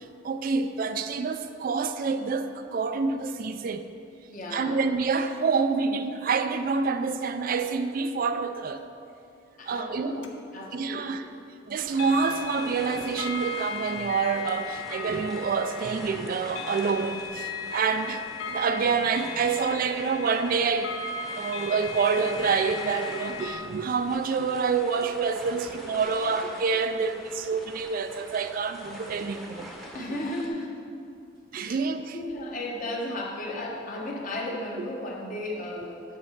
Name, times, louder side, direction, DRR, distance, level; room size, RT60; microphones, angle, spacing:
voice 1, 0.0-3.9 4.5-8.9 9.7-10.3 10.7-11.3 11.7-21.0 21.4-29.7 31.5-32.2 34.8-34.9, right 5 dB, 45° right, 9 dB, 0.3 m, -27 dB
voice 2, 4.3-4.8 9.6-10.3 10.5-11.2 29.9-30.7 31.6-31.8 32.1-36.2, left 1 dB, 45° left, -2 dB, 1.2 m, -34 dB
sound 1, 10.2-10.3 11.9-23.6, left 5 dB, 80° left, 0.7 m, -37 dB
sound 2, 11.8-30.5, equal, ahead, 0.9 m, -44 dB
8.9 x 4.3 x 6.4 m, 2.5 s
head